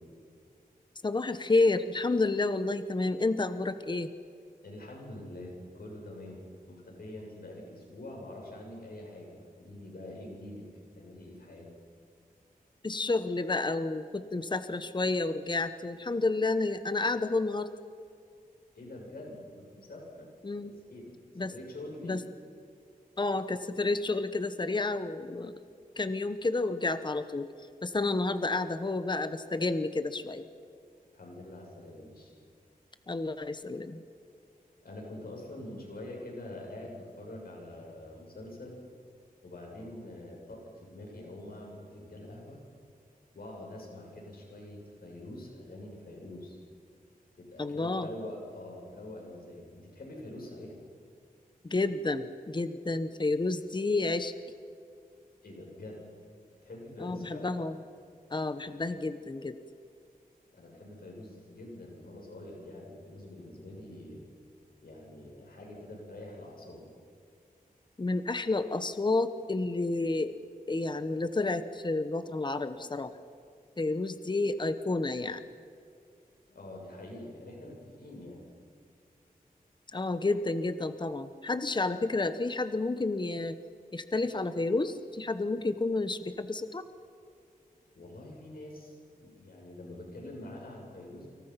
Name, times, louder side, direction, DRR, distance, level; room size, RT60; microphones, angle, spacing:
voice 1, 1.0-4.1 12.8-17.7 20.4-20.7 21.4-21.5 22.0-22.2 23.2-25.5 26.0-27.5 27.8-30.5 33.1-34.0 47.6-48.1 51.6-54.3 57.0-57.8 58.3-59.6 68.0-70.4 70.7-73.1 73.8-75.4 79.9-83.6 83.9-86.8, left 3 dB, 30° left, 11 dB, 1.1 m, -30 dB
voice 2, 4.6-10.7 11.0-11.7 18.7-20.3 20.6-22.2 31.1-32.3 34.8-38.8 39.4-42.6 43.3-46.6 47.4-50.8 55.4-56.0 56.6-57.5 60.5-64.2 64.8-66.9 76.5-78.4 87.9-91.3, left 1 dB, 80° left, -1 dB, 7.5 m, -45 dB
29.5 x 26.0 x 5.9 m, 2.4 s
wide cardioid pair, 105°, 15 cm